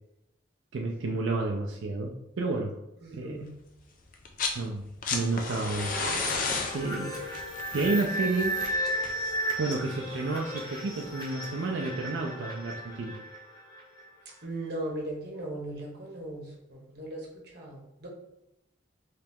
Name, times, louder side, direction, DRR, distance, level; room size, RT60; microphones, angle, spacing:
voice 1, 0.7-2.8 3.1-3.4 4.5-5.9 6.7-7.2 7.7-8.6 9.6-13.1, right 3 dB, 90° right, 0 dB, 0.4 m, -30 dB
voice 2, 3.0-3.5 14.4-17.3 17.5-18.1, right 1 dB, 55° right, -2 dB, 1.0 m, -38 dB
sound 1, 4.1-4.6 4.9-9.7 11.0-11.1, left 4 dB, 45° left, 0.5 m, -33 dB
sound 2, 5.5-14.1, equal, 20° left, 0.7 m, -35 dB
3.2 x 2.9 x 3.5 m, 0.87 s
head